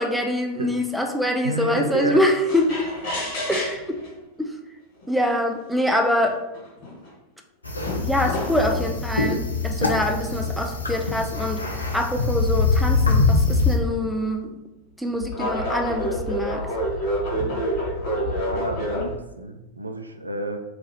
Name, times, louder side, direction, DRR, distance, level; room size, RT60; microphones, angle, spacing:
voice 1, 0.0-2.9 3.5-4.0 4.4-4.6 5.1-6.4 8.0-14.5 15.0-16.7, left 1 dB, ahead, 3 dB, 0.4 m, -24 dB
voice 2, 1.4-2.2 3.3-3.5 18.1-20.6, right 2 dB, 80° right, 4 dB, 0.3 m, -30 dB
sound 1, 2.5-4.1 5.0-5.1 5.9-6.0 6.2-7.1 7.9-8.9 9.9-11.4 14.0-14.2 15.2-19.1, equal, 50° left, 1.4 m, -28 dB
sound 2, 7.6-13.8, left 3 dB, 80° left, 0.4 m, -23 dB
2.8 x 2.3 x 3.1 m, 0.95 s
figure-of-eight pair, 90°, 0 cm